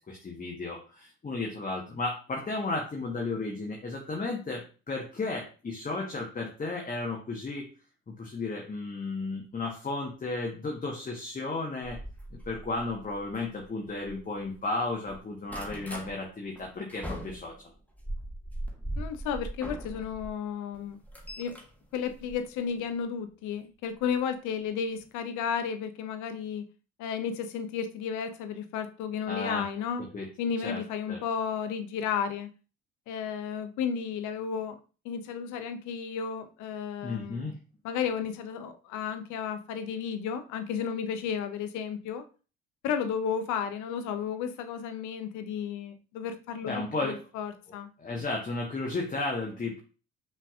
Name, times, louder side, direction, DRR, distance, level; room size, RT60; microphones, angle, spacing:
voice 1, 0.1-7.7 8.2-12.0 12.3-17.5 29.3-29.7 30.1-30.3 30.6-30.8 31.1-31.2 37.0-37.5 46.7-47.1 48.0-49.8, left 3 dB, 25° left, 0 dB, 1.1 m, -34 dB
sound 1, 11.8-14.6 14.9-16.1 16.6-20.3 20.7-22.9 24.0-24.2 24.6-24.7 25.0-25.1, right 1 dB, 5° left, 1.2 m, -40 dB
voice 2, 19.0-21.0 21.4-21.6 21.9-26.6 27.0-30.0 30.4-32.5 33.1-34.8 35.0-37.5 37.8-42.2 42.8-47.9, left 7 dB, 55° left, 9 dB, 0.7 m, -33 dB
5.7 x 3.3 x 2.4 m, 0.36 s
figure-of-eight pair, 50°, 35 cm